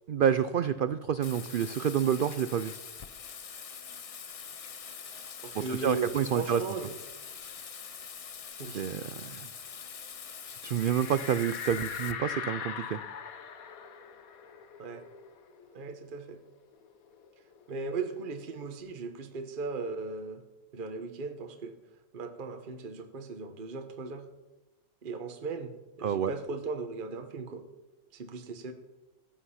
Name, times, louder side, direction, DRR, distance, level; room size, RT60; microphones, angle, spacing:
voice 1, 0.1-2.7 5.7-6.6 8.7-9.4 10.6-13.0 26.0-26.3, right 8 dB, 85° right, 14 dB, 0.4 m, -28 dB
Bathtub (filling or washing), 1.2-12.1, left 6 dB, 55° left, 0.3 m, -44 dB
voice 2, 5.4-6.9 8.6-8.8 14.8-15.0 15.7-16.4 17.7-20.4 20.7-21.7 22.1-24.3 25.0-25.7 26.0-27.6 28.1-28.7, right 4 dB, 40° right, 7 dB, 1.1 m, -37 dB
sound 1, 10.8-16.0 16.3-16.4 16.7-18.4, left 7 dB, 80° left, 1.5 m, -41 dB
15.0 x 8.7 x 5.7 m, 1.0 s
omnidirectional pair, 1.5 m